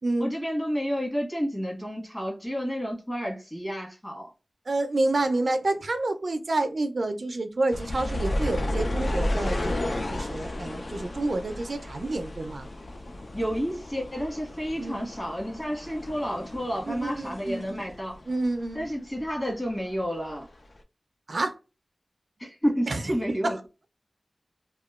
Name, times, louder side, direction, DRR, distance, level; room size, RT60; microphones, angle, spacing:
voice 1, 0.2-4.3 13.3-18.2 18.7-20.5 22.4-23.6, equal, 20° left, 1.3 m, -30 dB
voice 2, 4.7-12.7 14.8-15.1 16.9-17.8 18.3-18.9 21.3-21.6 22.9-23.0 23.4-23.5, right 2 dB, 65° right, 0.3 m, -28 dB
sound 1, 7.7-18.9 19.2-20.3 20.8-20.9, left 1 dB, 55° left, 0.3 m, -33 dB
2.8 x 2.1 x 2.3 m
wide cardioid pair, 75°, 0 cm